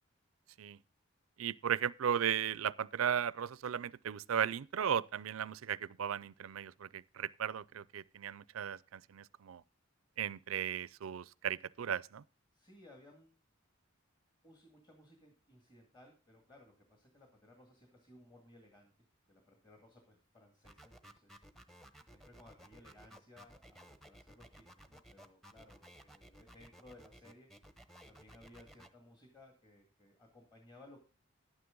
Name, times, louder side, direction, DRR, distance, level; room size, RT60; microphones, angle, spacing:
voice 1, 1.4-9.6 10.2-12.2, right 8 dB, 90° right, 0.4 m, -36 dB
voice 2, 12.5-13.4 14.4-18.9 19.3-21.4 22.1-27.5 28.1-31.0, left 1 dB, 20° left, 2.0 m, -60 dB
sound 1, 20.6-28.9, equal, ahead, 0.9 m, -57 dB
11.5 x 9.6 x 3.8 m
head